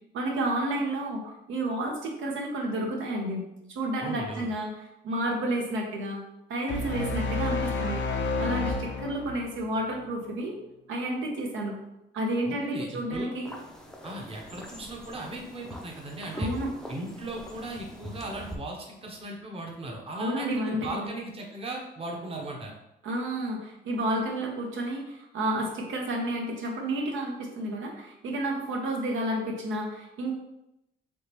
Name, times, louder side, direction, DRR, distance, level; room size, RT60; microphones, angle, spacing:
voice 1, 0.1-6.2 6.5-8.0 8.4-10.6 10.9-11.8 12.1-13.5 16.3-16.7 20.1-21.1 23.0-30.3, right 1 dB, 80° right, 0 dB, 0.7 m, -31 dB
voice 2, 4.0-4.5 12.4-13.4 14.0-16.5 16.9-22.7, right 2 dB, 30° right, 0 dB, 0.8 m, -37 dB
sound 1, 6.7-10.0, left 3 dB, 65° left, 0.5 m, -30 dB
sound 2, 13.5-18.6, left 1 dB, 5° left, 0.5 m, -41 dB
3.4 x 2.9 x 2.9 m, 0.88 s
cardioid pair, 90°, 20 cm